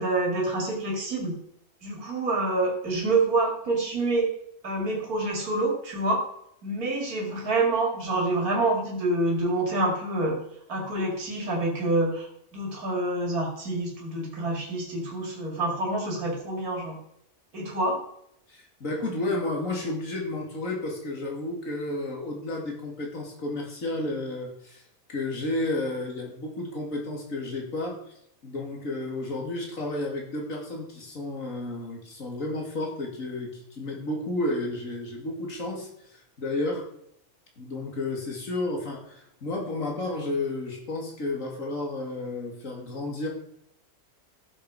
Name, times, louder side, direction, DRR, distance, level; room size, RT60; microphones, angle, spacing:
voice 1, 0.0-1.4 1.8-4.3 4.6-6.3 6.6-10.4 10.7-17.0 17.5-18.0, right 2 dB, 80° right, 0 dB, 2.7 m, -27 dB
voice 2, 18.5-24.8 25.1-36.9 37.6-43.3, left 2 dB, 65° left, 0 dB, 2.9 m, -32 dB
14.5 x 6.9 x 4.9 m, 0.74 s
omnidirectional pair, 1.5 m